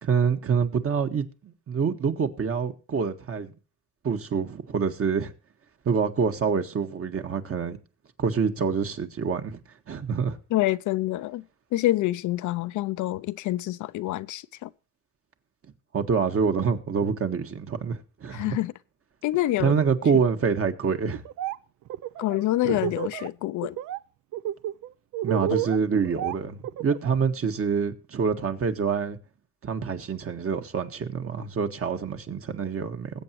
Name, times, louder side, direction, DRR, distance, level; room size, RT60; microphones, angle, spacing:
voice 1, 0.0-3.5 4.0-5.3 5.8-7.8 8.2-9.6 9.9-10.4 15.9-18.6 19.6-21.2 22.6-22.8 25.2-29.2 29.6-33.1, right 6 dB, 50° right, 1.6 m, -26 dB
voice 2, 10.5-11.4 11.7-14.7 18.3-18.7 19.2-19.7 22.2-23.8, left 16 dB, 80° left, 0.6 m, -26 dB
Laughter, 21.1-21.6 21.9-23.3 23.6-24.0 24.3-27.2, right 13 dB, 75° right, 0.6 m, -31 dB
21.0 x 8.2 x 3.0 m
cardioid pair, 90°, 30 cm